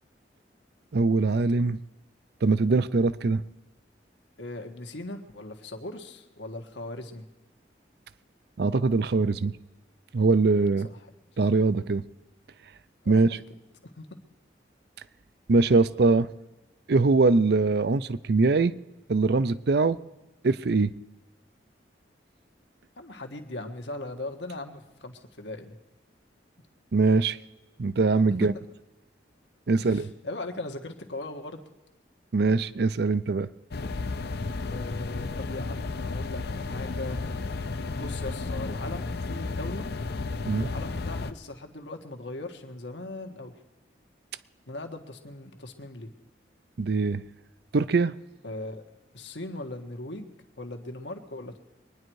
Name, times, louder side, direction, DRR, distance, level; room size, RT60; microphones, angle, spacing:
voice 1, 0.9-1.8 2.4-3.4 8.6-9.5 10.1-10.9 11.4-12.0 13.1-13.3 15.5-16.3 16.9-18.7 19.1-20.0 20.4-20.9 26.9-27.4 27.8-28.5 29.7-30.1 32.3-33.5 40.5-40.7 46.8-47.2 47.7-48.1, right 3 dB, 60° right, 17 dB, 0.5 m, -22 dB
voice 2, 4.4-7.2 10.8-11.1 13.0-13.4 13.8-14.1 23.0-25.8 29.8-31.6 34.7-37.3 37.9-39.9 40.6-43.5 44.7-46.1 48.4-48.8 49.1-51.6, left 2 dB, 80° left, 5 dB, 1.6 m, -39 dB
sound 1, 33.7-41.3, left 3 dB, 60° left, 0.7 m, -33 dB
23.5 x 10.0 x 4.7 m, 1.1 s
head